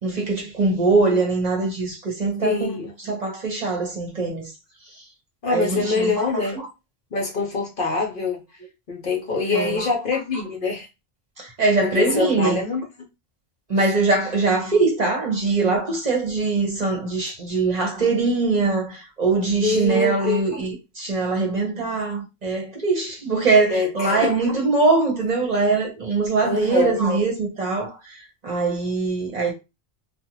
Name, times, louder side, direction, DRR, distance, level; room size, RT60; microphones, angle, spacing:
voice 1, 0.0-2.7 3.0-4.5 4.9-5.0 5.5-6.7 9.5-9.9 11.4-12.6 13.7-29.5, right 3 dB, 45° right, 0.8 m, -22 dB
voice 2, 2.4-2.9 5.4-6.6 7.1-8.4 8.9-10.9 11.9-12.9 13.8-13.9 19.6-20.4 23.7-24.3 26.4-27.0, left 4 dB, 55° left, 0.9 m, -24 dB
2.5 x 2.2 x 2.9 m
omnidirectional pair, 1.1 m